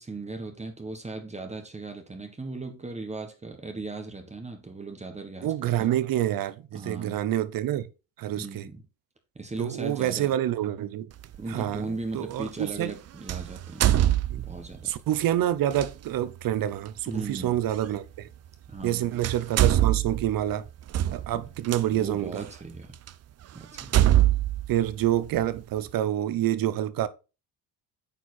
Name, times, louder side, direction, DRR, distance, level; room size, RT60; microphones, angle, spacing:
voice 1, 0.0-5.9 6.7-7.3 8.4-8.8 9.3-10.3 11.4-14.1 14.4-14.9 17.1-17.6 18.7-19.2 21.3-21.4 21.9-22.9 23.5-24.0, right 3 dB, 15° right, 1.4 m, -37 dB
voice 2, 5.4-7.9 8.2-8.7 9.6-11.1 11.5-11.8 12.1-12.9 14.3-14.4 14.8-18.3 18.8-20.7 21.1-22.4 24.7-27.1, right 12 dB, 60° right, 0.8 m, -27 dB
sound 1, 11.2-11.4 13.3-14.8 15.7-15.9 17.8-17.9 18.8-18.9 19.2-21.8 22.5-22.6 23.1-23.2 23.8-25.6, right 13 dB, 40° right, 0.5 m, -23 dB
8.8 x 4.5 x 4.2 m
cardioid pair, 100°, 39 cm